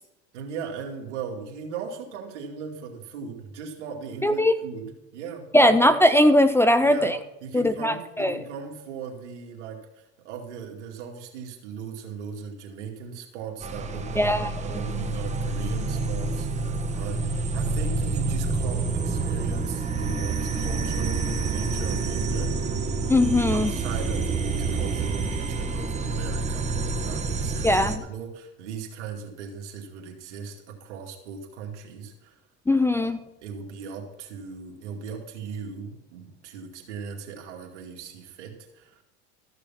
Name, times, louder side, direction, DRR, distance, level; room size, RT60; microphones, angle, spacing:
voice 1, 0.3-5.9 6.8-7.1 7.4-22.6 23.5-32.4 33.0-33.1 33.4-39.0, right 6 dB, 90° right, 1 dB, 2.5 m, -38 dB
voice 2, 4.2-4.5 5.5-7.2 7.5-8.4 14.2-14.8 23.1-23.7 27.6-28.0 32.7-33.2, left 1 dB, 10° left, 12 dB, 0.3 m, -20 dB
sound 1, 13.6-28.0, right 3 dB, 20° right, 1.1 m, -28 dB
14.0 x 6.9 x 5.8 m, 0.91 s
supercardioid pair, 115°, 34 cm